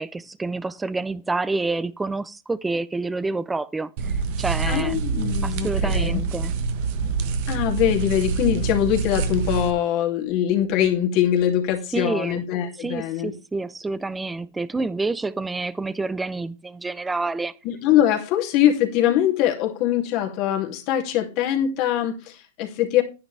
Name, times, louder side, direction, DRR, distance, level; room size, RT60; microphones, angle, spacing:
voice 1, 0.0-5.0 5.4-6.5 11.9-12.4 12.8-17.5, right 3 dB, 10° right, 0.6 m, -28 dB
sound 1, 4.0-9.7, right 5 dB, 55° right, 1.4 m, -26 dB
voice 2, 4.7-6.2 7.0-13.3 17.6-23.0, left 11 dB, 45° left, 2.7 m, -23 dB
10.5 x 9.7 x 3.4 m
hypercardioid pair, 125°, 0 cm